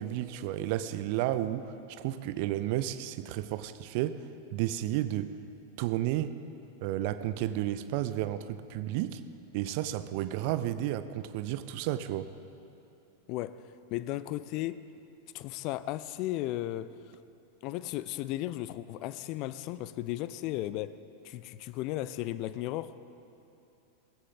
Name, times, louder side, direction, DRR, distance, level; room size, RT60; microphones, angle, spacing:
voice 1, 0.0-4.2 4.5-5.4 5.8-6.4 6.8-9.2 9.5-12.3, right 13 dB, 45° right, 13 dB, 0.6 m, -32 dB
voice 2, 13.9-14.8 15.3-16.9 17.6-21.0 21.2-22.9, left 15 dB, 40° left, 15 dB, 0.5 m, -35 dB
19.5 x 15.5 x 4.0 m, 2.9 s
figure-of-eight pair, 90°, 0 cm